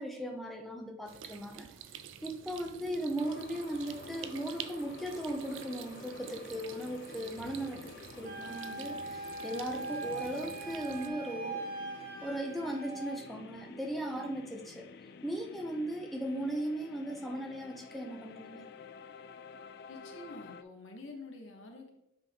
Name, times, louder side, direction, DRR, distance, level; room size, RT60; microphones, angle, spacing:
voice 1, 0.0-1.7 2.2-7.8 8.2-11.6 12.2-14.8 15.2-18.6, right 1 dB, ahead, 1 dB, 0.6 m, -37 dB
sound 1, 1.1-11.1, right 9 dB, 80° right, 0.4 m, -49 dB
sound 2, 3.2-20.6, left 5 dB, 55° left, 0.3 m, -50 dB
Wind instrument woodwind instrument, 8.2-13.2, right 3 dB, 50° right, 1.0 m, -41 dB
voice 2, 19.9-22.0, left 2 dB, 85° left, 3 dB, 1.1 m, -48 dB
7.5 x 3.5 x 3.6 m, 0.85 s
head